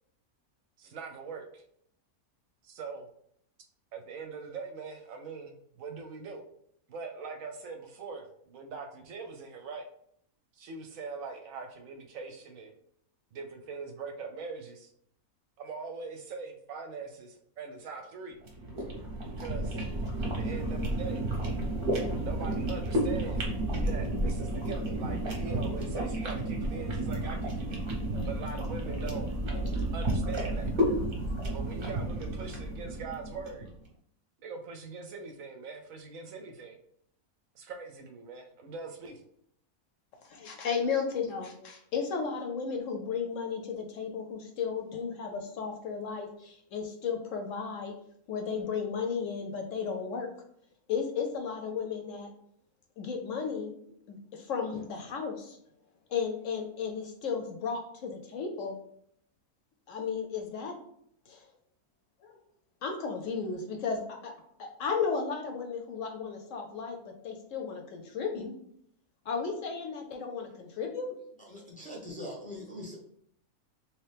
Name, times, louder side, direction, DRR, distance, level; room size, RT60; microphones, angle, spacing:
voice 1, 0.8-1.6 2.6-3.1 3.9-6.4 6.9-9.9 10.5-12.7 13.3-14.9 15.6-18.4 19.4-19.8 20.2-21.2 22.2-23.5 23.8-27.9 28.3-29.3 29.9-30.7 31.5-33.6 34.4-36.8 37.5-39.3, right 5 dB, 70° right, 4 dB, 0.9 m, -42 dB
sound 1, 18.4-33.7, right 1 dB, 45° right, 0.8 m, -32 dB
voice 2, 40.2-47.9 48.3-50.3 50.9-52.3 53.0-53.7 54.1-55.6 56.1-58.8 59.9-60.8 61.3-61.4 62.2-62.4 62.8-64.3 64.6-68.5 69.3-71.1, left 5 dB, 70° left, 4 dB, 0.8 m, -34 dB
voice 3, 71.5-73.0, left 1 dB, 10° left, -3 dB, 0.5 m, -41 dB
3.0 x 3.0 x 3.2 m, 0.69 s
omnidirectional pair, 1.5 m